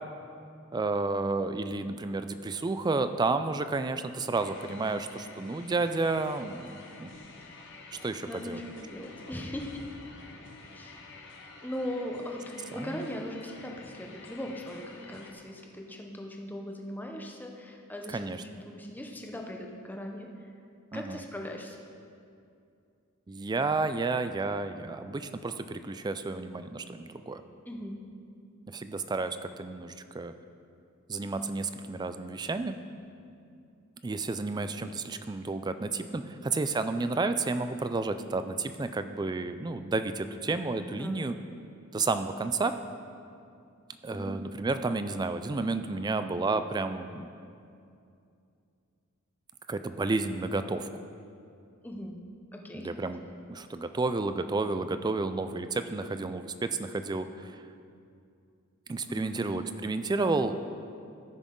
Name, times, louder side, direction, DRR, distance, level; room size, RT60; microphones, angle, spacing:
voice 1, 0.7-6.7 7.0-7.1 8.0-8.6 12.7-13.0 18.1-18.4 20.9-21.2 23.3-27.4 28.7-30.3 31.1-32.8 34.0-41.3 41.9-42.7 44.0-47.3 49.7-50.9 52.7-57.6 58.9-60.6, right 3 dB, 20° right, 10 dB, 0.3 m, -31 dB
sound 1, 4.3-15.3, left 3 dB, 60° left, 1.0 m, -49 dB
voice 2, 8.3-9.9 10.7-11.0 11.6-20.5 20.9-21.8 27.7-27.9 40.9-41.3 44.1-44.3 51.8-52.2 52.5-52.9 59.1-59.4, left 1 dB, 10° left, 1 dB, 0.7 m, -39 dB
14.0 x 6.2 x 3.8 m, 2.5 s
head